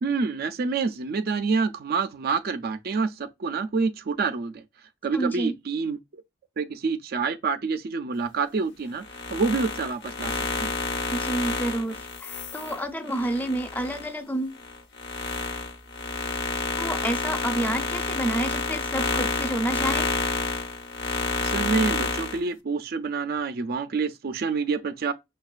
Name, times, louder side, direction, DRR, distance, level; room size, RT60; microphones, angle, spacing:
voice 1, 0.0-4.6 5.0-6.0 6.6-10.7 21.4-25.1, right 4 dB, 50° right, 0.4 m, -27 dB
voice 2, 5.1-5.5 11.1-14.6 16.8-20.1, right 1 dB, 10° left, 0.6 m, -29 dB
sound 1, 9.0-14.1 14.5-22.4, left 3 dB, 60° left, 0.9 m, -29 dB
6.2 x 2.2 x 2.4 m
head